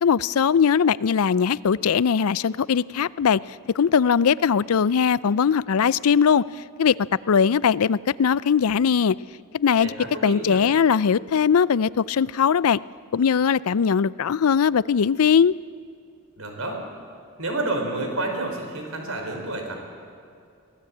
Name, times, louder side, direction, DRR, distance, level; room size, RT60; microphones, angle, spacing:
voice 1, 0.0-3.4 3.7-6.4 6.8-9.2 9.5-9.9 10.2-12.8 13.1-15.5, left 7 dB, 80° left, 20 dB, 0.4 m, -20 dB
voice 2, 9.8-10.6 16.4-16.8 17.4-19.8, right 2 dB, 75° right, 3 dB, 4.8 m, -29 dB
23.5 x 17.0 x 8.6 m, 2.4 s
head